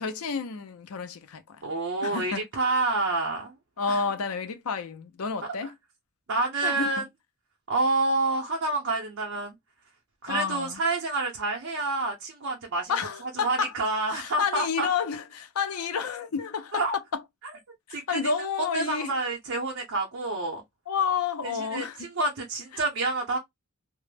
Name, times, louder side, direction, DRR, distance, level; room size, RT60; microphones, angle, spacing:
voice 1, 0.0-1.4 2.0-2.4 3.8-5.7 6.6-7.0 10.3-10.8 12.9-13.7 14.1-17.2 17.9-19.1 20.9-22.0, left 6 dB, 80° left, 0.5 m, -30 dB
voice 2, 1.6-3.5 3.9-4.0 5.6-5.7 6.3-7.0 7.7-9.5 10.2-12.9 13.3-14.9 16.7-17.0 17.9-18.2 18.7-20.6 21.4-23.4, right 2 dB, 60° right, 0.6 m, -28 dB
2.1 x 2.0 x 3.2 m
head